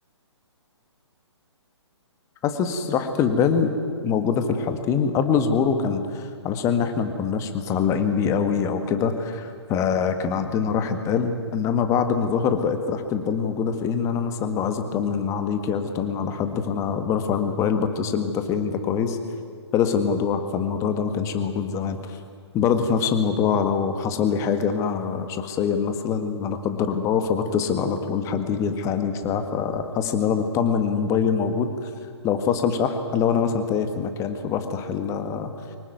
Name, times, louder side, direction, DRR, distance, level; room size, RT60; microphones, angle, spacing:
voice 1, 2.4-3.7 4.0-19.2 19.7-22.2 22.5-31.9 32.2-35.5, left 6 dB, 20° left, 8 dB, 1.8 m, -24 dB
24.0 x 19.0 x 9.4 m, 2.2 s
figure-of-eight pair, 130°, 15 cm